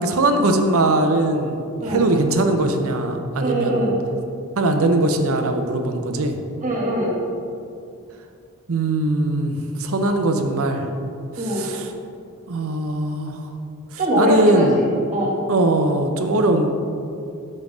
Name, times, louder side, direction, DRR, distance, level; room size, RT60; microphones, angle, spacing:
voice 1, 0.0-3.9 4.6-6.4 8.7-10.9 11.5-11.9 12.5-13.4 14.2-14.8 15.5-16.7, right 2 dB, 65° right, 6 dB, 0.7 m, -20 dB
voice 2, 3.4-3.9 6.6-7.2 11.4-11.7 14.0-15.4, right 1 dB, 35° right, -3 dB, 1.7 m, -22 dB
5.4 x 5.3 x 6.1 m, 2.5 s
head